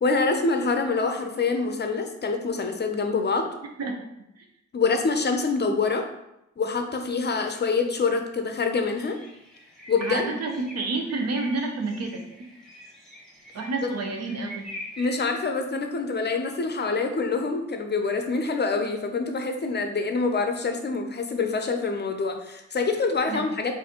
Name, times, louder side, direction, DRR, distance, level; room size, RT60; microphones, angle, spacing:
voice 1, 0.0-3.5 4.7-6.1 6.6-9.2 9.9-10.3 15.0-23.8, left 4 dB, 35° left, 5 dB, 0.6 m, -26 dB
sound 1, 9.0-15.3, equal, ahead, 1.2 m, -43 dB
voice 2, 10.0-12.2 13.5-14.7 23.3-23.5, right 3 dB, 55° right, 3 dB, 0.7 m, -29 dB
4.0 x 2.6 x 2.9 m, 0.86 s
supercardioid pair, 55°, 30 cm